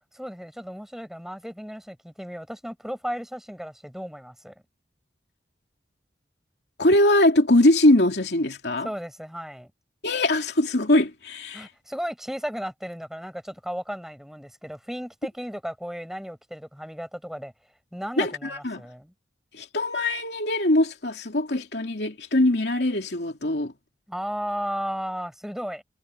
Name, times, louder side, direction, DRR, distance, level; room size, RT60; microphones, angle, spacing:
voice 1, 0.1-4.5 8.8-9.7 11.5-17.5 17.9-19.1 24.1-25.8, equal, ahead, 6.4 m, -34 dB
voice 2, 6.8-8.9 10.0-11.7 18.2-18.8 19.5-23.7, left 1 dB, 70° left, 3.0 m, -22 dB
head